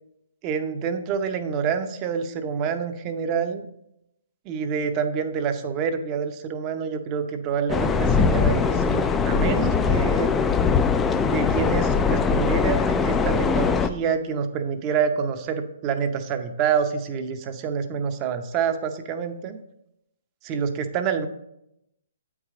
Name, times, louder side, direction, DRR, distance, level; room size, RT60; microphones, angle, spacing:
voice 1, 0.4-3.7 4.5-10.3 11.3-19.6 20.4-21.3, right 6 dB, 30° right, 7 dB, 0.7 m, -27 dB
sound 1, 7.7-13.9, left 5 dB, 15° left, 0.3 m, -21 dB
8.1 x 4.8 x 3.7 m, 0.81 s
hypercardioid pair, 135°, 0 cm